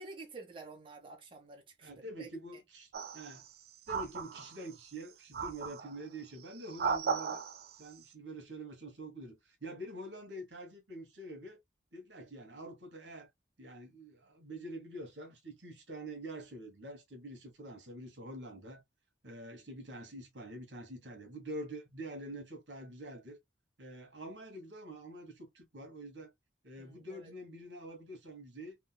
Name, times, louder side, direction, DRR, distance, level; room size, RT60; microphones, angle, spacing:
voice 1, 0.0-2.3 26.8-27.3, right 3 dB, 30° right, 0.8 m, -50 dB
voice 2, 1.8-3.4 3.9-7.4 7.8-11.6 11.9-13.3 13.6-18.8 19.2-23.4 23.8-26.3 26.6-28.8, right 1 dB, 80° right, 1.3 m, -46 dB
sound 1, 2.9-3.5 3.9-4.7 5.3-6.0 6.6-7.8, right 6 dB, 60° right, 0.4 m, -36 dB
3.6 x 2.3 x 2.2 m
head